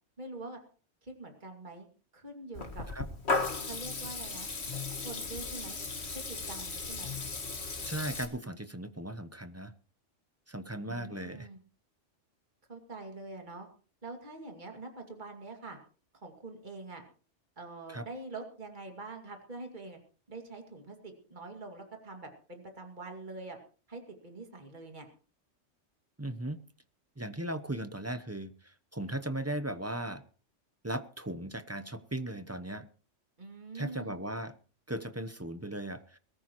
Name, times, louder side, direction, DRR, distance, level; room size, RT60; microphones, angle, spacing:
voice 1, 0.2-0.6 1.0-1.9 2.1-2.9 3.6-4.5 4.9-5.8 6.1-7.2 10.9-11.6 12.7-13.7 14.0-15.8 16.2-17.0 17.6-20.0 20.3-23.6 23.9-25.1 33.4-34.2, right 2 dB, 40° right, 3 dB, 2.6 m, -45 dB
Water tap faucet / Liquid, 2.5-8.2, left 3 dB, 60° left, 2.1 m, -36 dB
voice 2, 7.8-9.7 10.5-11.5 17.9-18.1 26.2-26.6 27.2-30.2 30.8-32.9 33.7-34.5 34.9-36.2, right 1 dB, 15° right, 10 dB, 0.8 m, -37 dB
22.0 x 14.0 x 3.1 m, 0.39 s
omnidirectional pair, 1.2 m